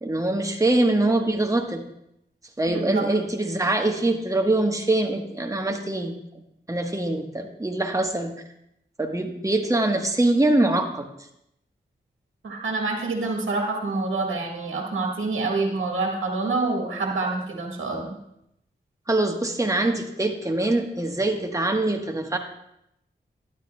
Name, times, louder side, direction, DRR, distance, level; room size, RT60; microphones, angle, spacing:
voice 1, 0.0-1.8 2.6-6.2 6.7-8.3 9.0-11.1 19.1-22.4, right 2 dB, 15° right, 4 dB, 1.1 m, -23 dB
voice 2, 2.7-3.0 12.4-18.2, right 3 dB, 85° right, 0 dB, 1.5 m, -27 dB
12.0 x 10.0 x 2.2 m, 0.80 s
cardioid pair, 40°, 20 cm